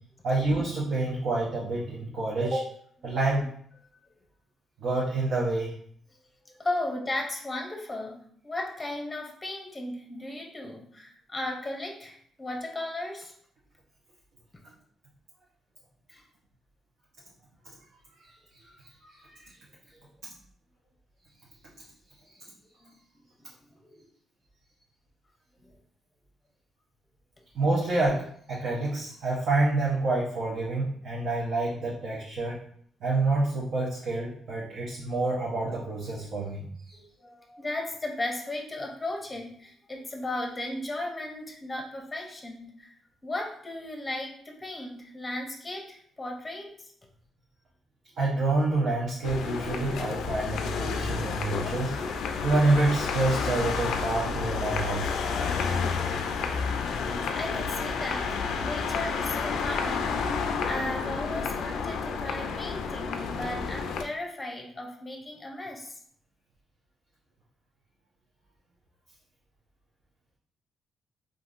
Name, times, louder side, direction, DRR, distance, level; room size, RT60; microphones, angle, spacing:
voice 1, 0.2-2.7 3.0-3.5 4.8-5.7 18.2-18.3 19.1-19.5 27.5-32.6 33.0-37.0 48.2-51.9 52.4-55.1, right 2 dB, 65° right, -6 dB, 0.8 m, -27 dB
voice 2, 6.6-13.3 16.1-16.2 19.9-20.1 22.8-22.9 23.4-24.1 25.6-25.7 36.9-43.0 43.2-46.9 57.3-66.0, left 2 dB, 20° left, 1 dB, 0.6 m, -36 dB
sound 1, 49.2-64.0, left 5 dB, 80° left, 0.3 m, -30 dB
3.5 x 2.5 x 2.5 m, 0.62 s
cardioid pair, 90°, 0 cm